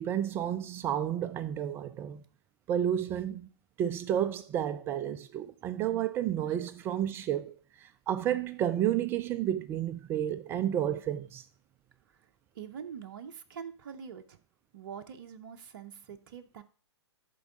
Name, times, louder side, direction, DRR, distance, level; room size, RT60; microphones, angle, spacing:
voice 1, 0.0-2.2 2.7-3.5 3.8-11.4, right 10 dB, 15° right, 0.3 m, -31 dB
voice 2, 12.5-14.4 14.7-16.6, right 7 dB, 50° right, 0.7 m, -44 dB
11.0 x 4.6 x 4.9 m
figure-of-eight pair, 120°, 15 cm